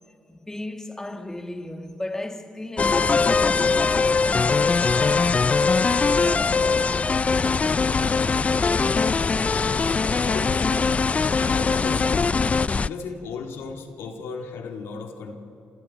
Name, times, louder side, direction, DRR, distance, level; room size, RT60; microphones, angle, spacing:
voice 1, 0.3-9.0, left 1 dB, 10° left, 1.6 m, -36 dB
sound 1, 2.8-12.9, left 4 dB, 35° left, 0.4 m, -21 dB
voice 2, 10.3-10.7 11.4-12.3 12.7-15.4, left 5 dB, 85° left, 2.2 m, -35 dB
27.5 x 26.5 x 4.2 m
cardioid pair, 70°, 4 cm